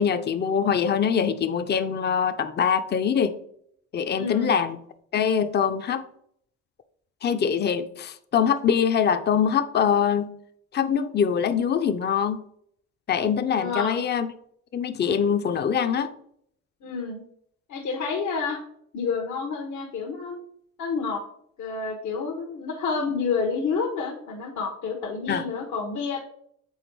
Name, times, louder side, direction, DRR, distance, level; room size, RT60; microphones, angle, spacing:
voice 1, 0.0-3.3 3.9-4.8 5.1-6.0 7.2-10.3 10.7-12.4 13.1-14.3 14.7-16.1 25.3-25.4, left 7 dB, 35° left, 9 dB, 0.5 m, -23 dB
voice 2, 4.1-4.6 13.6-14.0 16.8-17.2 17.7-18.6 18.9-20.4 20.8-21.2 21.6-26.2, left 5 dB, 70° left, 0 dB, 1.1 m, -29 dB
7.1 x 3.7 x 4.6 m, 0.68 s
cardioid pair, 90°, 30 cm